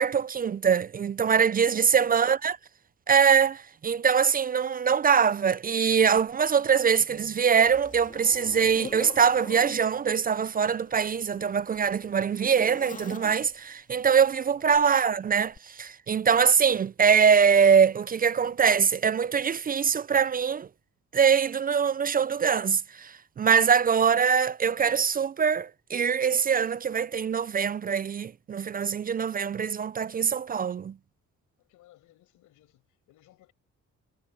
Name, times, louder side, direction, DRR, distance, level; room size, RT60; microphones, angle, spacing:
voice 1, 0.0-2.6 3.1-20.7 21.1-30.9, right 6 dB, 30° right, 0.4 m, -23 dB
voice 2, 1.7-2.3 14.5-14.8 31.6-33.5, left 15 dB, 90° left, 5.4 m, -57 dB
Zipper (clothing), 6.2-6.3 6.9-9.8 10.8-13.7 14.7-14.9 15.5-15.6, left 4 dB, 25° left, 1.9 m, -44 dB
cardioid pair, 90°, 30 cm